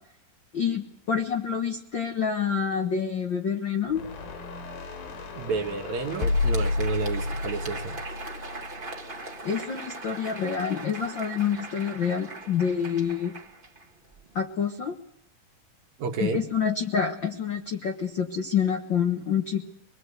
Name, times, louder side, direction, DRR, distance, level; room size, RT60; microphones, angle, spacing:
voice 1, 0.5-4.0 9.4-13.3 14.3-14.9 16.2-19.6, left 7 dB, 70° left, 4 dB, 1.1 m, -27 dB
sound 1, 3.9-9.2, left 3 dB, 90° left, 5.7 m, -31 dB
voice 2, 5.3-8.0 16.0-16.5, right 4 dB, 60° right, 4 dB, 2.4 m, -30 dB
Crowd, 6.0-14.4, right 2 dB, 25° right, 1.0 m, -40 dB
24.5 x 21.0 x 8.1 m, 0.73 s
omnidirectional pair, 4.1 m